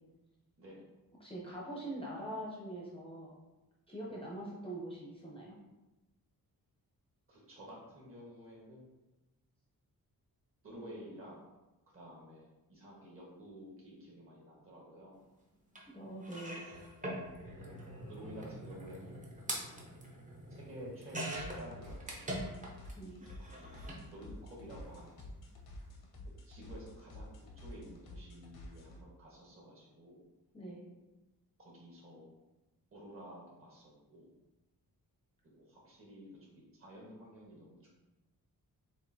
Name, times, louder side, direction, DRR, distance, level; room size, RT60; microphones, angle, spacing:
voice 1, 1.2-3.4 3.9-5.6 15.9-16.7 23.0-23.2 30.5-30.8, right 1 dB, 15° left, -5 dB, 0.7 m, -43 dB
voice 2, 7.3-8.8 10.6-11.4 11.9-15.2 17.4-17.7 18.0-19.7 20.5-22.4 23.4-23.7 24.0-25.3 26.5-30.2 31.6-32.4 32.9-34.3 35.5-37.9, equal, 35° right, -4 dB, 1.4 m, -52 dB
sound 1, 15.7-15.8 16.2-22.9 23.2-24.0 25.0-25.2 25.5-25.6, right 1 dB, 20° right, 0.8 m, -43 dB
sound 2, 21.3-29.0, left 1 dB, 80° left, 0.9 m, -50 dB
6.9 x 2.6 x 2.7 m, 1.0 s
wide cardioid pair, 170°, 36 cm